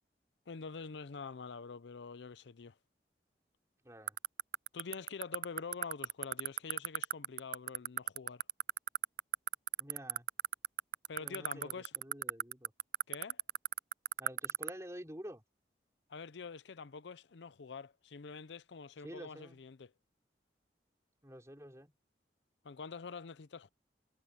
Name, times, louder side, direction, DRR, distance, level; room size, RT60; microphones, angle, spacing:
voice 1, 0.5-2.8 4.7-8.4 11.1-11.9 13.1-13.4 16.1-19.9 22.6-23.7, left 5 dB, 80° left, 0.6 m, -46 dB
voice 2, 3.8-4.2 9.8-10.3 11.2-12.7 14.2-15.4 19.0-19.6 21.2-21.9, equal, 15° right, 5.0 m, -49 dB
sound 1, 4.1-14.7, right 12 dB, 50° right, 0.3 m, -32 dB
head